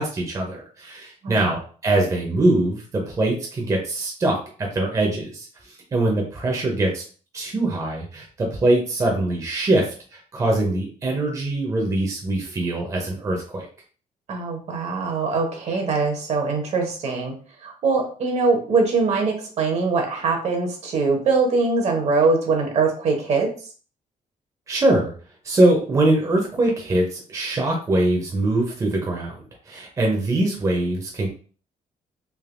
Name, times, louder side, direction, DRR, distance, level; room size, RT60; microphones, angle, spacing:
voice 1, 0.0-5.5 5.9-7.0 7.3-13.7 24.7-25.1 25.4-29.4 29.7-31.3, right 2 dB, 25° right, 0 dB, 0.6 m, -22 dB
voice 2, 14.3-17.3 17.6-23.5, right 4 dB, 50° right, 3 dB, 0.8 m, -22 dB
3.3 x 2.5 x 2.5 m, 0.41 s
cardioid pair, 150°, 14 cm